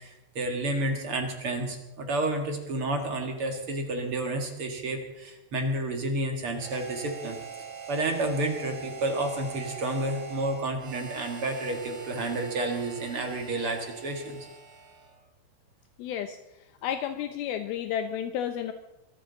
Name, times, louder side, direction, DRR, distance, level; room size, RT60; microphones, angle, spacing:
voice 1, 0.0-7.4 7.9-14.5, right 2 dB, 45° right, 4 dB, 1.9 m, -30 dB
Harmonica, 6.5-15.2, right 6 dB, 70° right, 5.1 m, -43 dB
voice 2, 16.0-16.4 16.8-18.7, left 9 dB, 80° left, 8 dB, 2.5 m, -31 dB
23.5 x 13.5 x 4.0 m, 0.96 s
omnidirectional pair, 4.6 m